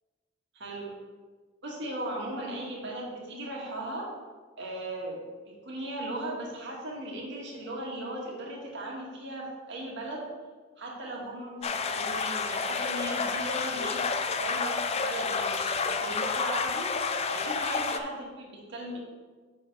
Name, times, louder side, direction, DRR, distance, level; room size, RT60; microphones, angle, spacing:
voice 1, 0.5-0.9 1.6-4.1 4.6-10.3 10.8-14.1 14.4-19.0, right 1 dB, 60° right, -2 dB, 1.8 m, -37 dB
sound 1, 11.6-18.0, left 5 dB, 30° left, 0.4 m, -30 dB
6.9 x 4.8 x 5.4 m, 1.4 s
head